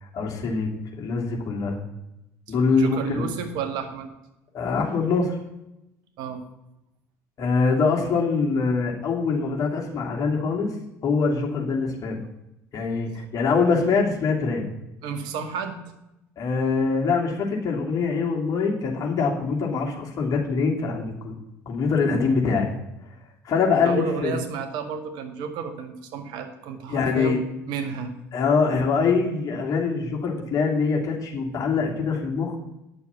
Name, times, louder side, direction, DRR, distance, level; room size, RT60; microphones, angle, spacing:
voice 1, 0.0-1.8 2.5-3.3 4.5-5.4 7.4-10.7 11.0-12.2 12.7-14.6 16.4-21.3 21.7-22.7 23.4-24.4 26.9-27.4 28.3-32.6, left 4 dB, 45° left, -1 dB, 2.8 m, -24 dB
voice 2, 2.7-4.1 6.2-6.4 15.0-15.8 23.8-27.4 27.7-28.1, right 6 dB, 65° right, 6 dB, 1.7 m, -31 dB
9.5 x 6.9 x 7.2 m, 0.88 s
hypercardioid pair, 65°, 8 cm